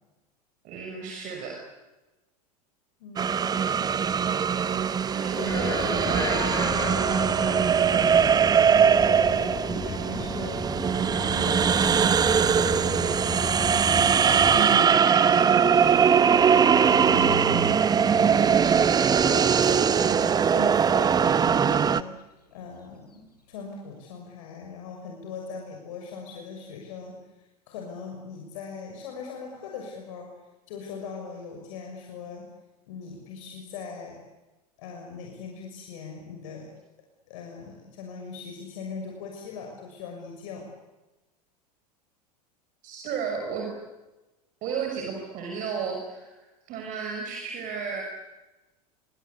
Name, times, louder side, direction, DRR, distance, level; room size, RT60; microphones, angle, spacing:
voice 1, 0.6-1.6 5.1-7.5 14.5-16.4 42.8-43.7 44.6-46.3 46.7-48.0, right 6 dB, 40° right, 2 dB, 6.2 m, -33 dB
voice 2, 3.0-3.6 5.3-6.9 8.7-10.6 11.3-12.6 18.2-18.9 19.3-22.2 22.5-27.2 27.7-30.3 30.7-32.5 32.9-34.2 34.8-36.7 37.3-40.7, left 5 dB, 55° left, 1 dB, 6.4 m, -40 dB
sound 1, 3.2-22.0, right 7 dB, 20° right, 1.0 m, -21 dB
sound 2, 5.5-14.6, left 3 dB, 15° left, 7.7 m, -34 dB
sound 3, 12.0-20.6 20.9-23.5, left 2 dB, 80° left, 4.4 m, -41 dB
28.0 x 25.0 x 8.5 m, 1.1 s
figure-of-eight pair, 85°, 20 cm